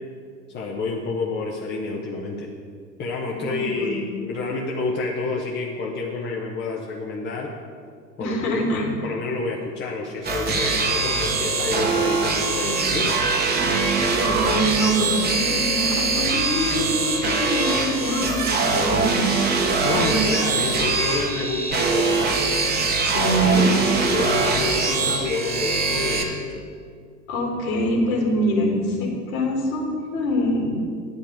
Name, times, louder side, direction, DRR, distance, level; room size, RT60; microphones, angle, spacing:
voice 1, 0.5-2.5 3.0-7.5 8.2-13.2 19.8-22.4 23.1-26.6, left 3 dB, 20° left, -1 dB, 1.0 m, -29 dB
voice 2, 3.5-3.9 8.2-8.9 14.2-19.2 19.9-20.6 23.0-23.7 27.3-30.8, equal, 55° left, 0 dB, 3.0 m, -24 dB
sound 1, 10.2-26.2, right 4 dB, 20° right, 1.3 m, -22 dB
10.0 x 5.4 x 8.3 m, 2.2 s
figure-of-eight pair, 90°, 49 cm